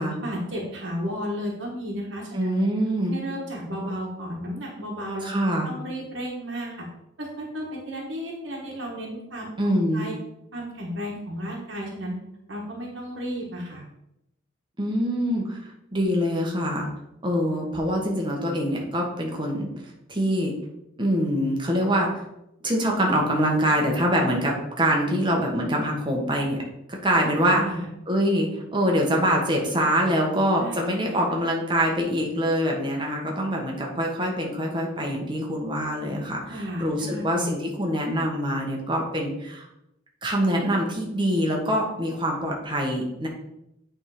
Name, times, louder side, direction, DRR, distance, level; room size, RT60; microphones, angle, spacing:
voice 1, 0.2-2.5 3.1-5.3 5.6-6.9 7.2-9.5 9.9-10.1 10.5-12.2 12.5-13.8 27.5-27.9 30.6-30.8 31.1-31.2 36.5-37.5, equal, 65° right, -2 dB, 1.6 m, -33 dB
voice 2, 2.3-3.2 5.2-5.7 9.6-10.1 14.8-15.6 15.9-16.9 17.2-19.7 20.1-20.5 21.0-22.2 22.6-26.6 26.9-27.6 28.1-39.7 40.2-43.3, equal, 25° right, 0 dB, 1.4 m, -24 dB
8.6 x 3.8 x 4.9 m, 0.85 s
head